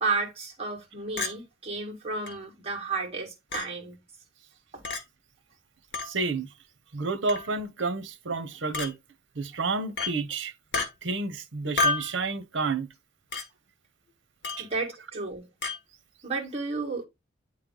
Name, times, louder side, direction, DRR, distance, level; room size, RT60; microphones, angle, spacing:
voice 1, 0.0-4.0 4.7-4.8 14.6-15.5 16.2-17.0, right 4 dB, 30° right, 1.9 m, -32 dB
Chink clink, 1.2-1.3 2.3-2.4 3.5-3.7 4.8-5.0 5.9-6.1 7.3-7.5 8.7-8.9 10.0-10.1 10.7-10.9 11.8-12.1 13.3-13.5 14.4-14.7 15.6-15.8, left 3 dB, 65° left, 1.2 m, -29 dB
voice 2, 6.0-6.5 6.9-8.9 9.4-10.5 11.0-12.9 14.6-14.7, right 3 dB, 80° right, 0.8 m, -30 dB
8.5 x 3.3 x 3.8 m
head